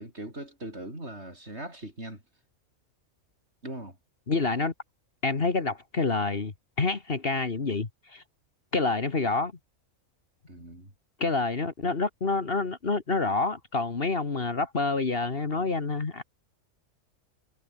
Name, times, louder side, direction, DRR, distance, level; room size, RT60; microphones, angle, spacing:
voice 1, 0.0-2.2 3.6-4.0 10.5-10.9, right 1 dB, 55° right, 7.4 m, -40 dB
voice 2, 4.3-4.7 5.2-8.2 8.7-9.5 11.2-16.2, left 3 dB, 45° left, 1.9 m, -28 dB
omnidirectional pair, 1.4 m